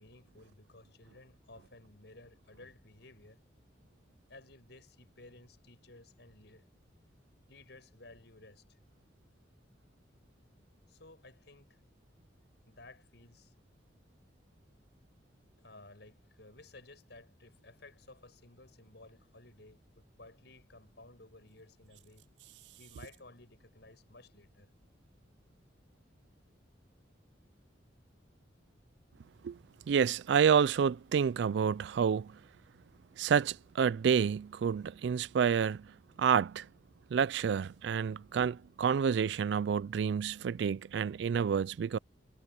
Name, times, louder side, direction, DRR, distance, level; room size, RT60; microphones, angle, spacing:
voice 1, 0.0-3.4 4.3-6.7 7.5-8.8 10.9-11.8 12.7-13.5 15.6-22.2 22.8-24.7, left 2 dB, 60° left, 7.8 m, -56 dB
voice 2, 29.9-32.3 33.2-35.8 36.2-36.7 37.1-42.0, right 7 dB, 65° right, 0.3 m, -29 dB
head